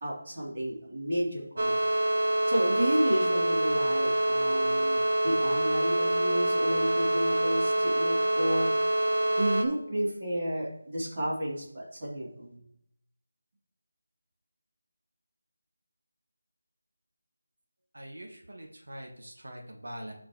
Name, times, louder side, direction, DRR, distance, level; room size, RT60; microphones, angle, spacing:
voice 1, 0.0-1.8 2.5-8.9 9.4-12.6, right 1 dB, 35° right, -6 dB, 2.8 m, -31 dB
sound 1, 1.6-9.6, right 1 dB, 55° right, 1.0 m, -26 dB
voice 2, 17.9-20.1, right 1 dB, 85° right, 1 dB, 1.3 m, -43 dB
12.0 x 4.5 x 3.0 m, 0.74 s
figure-of-eight pair, 175°, 0 cm